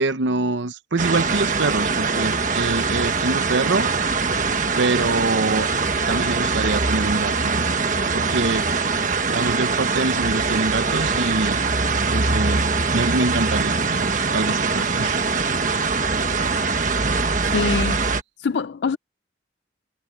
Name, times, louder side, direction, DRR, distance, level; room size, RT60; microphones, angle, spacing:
voice 1, 0.0-3.9 4.8-5.7 6.1-7.7 8.1-8.7 9.3-11.6 12.1-15.5, right 3 dB, 75° right, 0.9 m, -25 dB
sound 1, 1.0-18.2, right 4 dB, 40° right, 1.5 m, -22 dB
voice 2, 17.4-18.0 18.4-19.0, left 5 dB, 65° left, 0.4 m, -24 dB
head